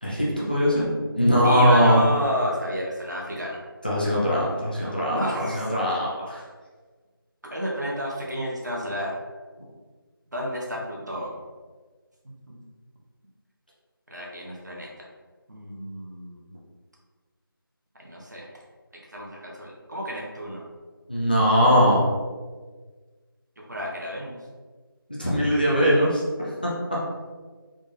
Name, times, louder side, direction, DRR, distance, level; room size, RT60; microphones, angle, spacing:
voice 1, 0.0-2.0 3.8-6.4 21.1-22.0 25.2-26.2 26.6-26.7, equal, 25° left, -7 dB, 0.5 m, -21 dB
voice 2, 1.4-3.6 5.1-5.7 7.5-9.1 10.3-11.3 12.2-12.6 14.1-15.1 15.5-16.5 18.0-18.4 19.1-20.6 23.7-24.4, equal, 50° right, -3 dB, 0.9 m, -31 dB
3.6 x 2.5 x 4.0 m, 1.4 s
figure-of-eight pair, 170°, 12 cm